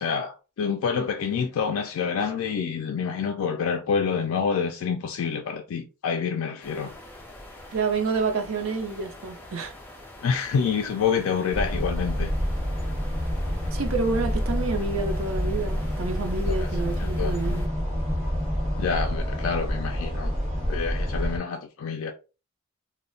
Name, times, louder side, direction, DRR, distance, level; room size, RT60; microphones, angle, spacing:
voice 1, 0.0-6.9 10.2-12.3 16.5-16.7 17.0-17.4 18.8-20.3 20.7-22.1, left 6 dB, 80° left, 0.3 m, -27 dB
sound 1, 6.6-17.7, equal, 10° left, 0.4 m, -40 dB
voice 2, 7.7-9.7 13.7-17.7, right 4 dB, 75° right, 0.5 m, -28 dB
sound 2, 11.5-21.4, equal, 30° right, 1.3 m, -28 dB
2.1 x 2.0 x 3.8 m
head